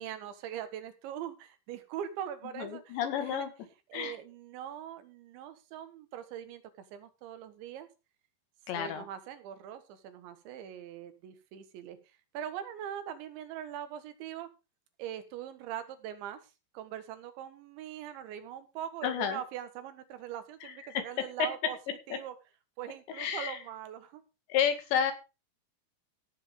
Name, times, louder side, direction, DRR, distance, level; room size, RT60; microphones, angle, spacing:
voice 1, 0.0-3.5 3.9-7.9 8.7-14.5 15.0-22.4 22.8-24.2, right 10 dB, 85° right, 10 dB, 3.8 m, -42 dB
voice 2, 2.6-3.5 3.9-4.2 8.7-9.0 19.0-19.4 20.6-21.0 21.4-21.5 23.1-23.6 24.5-25.1, left 8 dB, 75° left, 8 dB, 4.2 m, -31 dB
15.5 x 7.5 x 5.1 m, 0.29 s
omnidirectional pair, 5.1 m